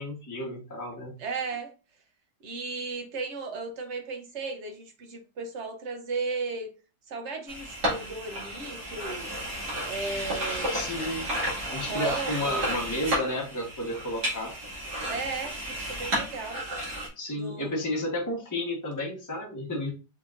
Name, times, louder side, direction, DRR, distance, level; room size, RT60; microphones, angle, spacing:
voice 1, 0.0-1.1 10.7-11.3 11.7-14.5 17.2-19.9, left 1 dB, 10° left, -2 dB, 1.1 m, -32 dB
voice 2, 1.2-1.7 2.4-6.7 7.1-9.4 9.9-10.9 11.9-12.6 15.1-16.6 17.3-17.8, right 4 dB, 50° right, 4 dB, 1.0 m, -35 dB
sound 1, 7.5-17.1, right 1 dB, 75° right, 2.8 m, -32 dB
5.6 x 3.5 x 2.5 m, 0.32 s
omnidirectional pair, 1.8 m